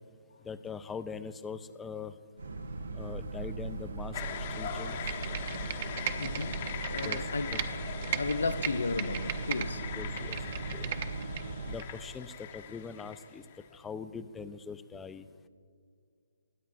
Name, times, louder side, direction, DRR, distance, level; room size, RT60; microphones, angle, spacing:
voice 1, 0.4-2.1 3.0-4.2 4.6-5.0 7.0-7.2 7.5-7.6 10.0-10.4 10.7-10.9 11.7-13.4 13.7-15.3, left 5 dB, 10° left, 0.4 m, -42 dB
Boat Water vehicle, 2.4-11.8, right 3 dB, 80° right, 0.8 m, -38 dB
sound 1, 4.1-13.8, left 8 dB, 40° left, 0.8 m, -42 dB
Computer keyboard, 4.9-7.7 8.0-9.7 10.0-11.4 11.8-11.9, right 11 dB, 45° right, 0.7 m, -36 dB
voice 2, 6.2-6.6 6.9-7.7 8.1-9.9, left 4 dB, 80° left, 0.5 m, -34 dB
22.0 x 8.9 x 2.5 m
hypercardioid pair, 150°, 0 cm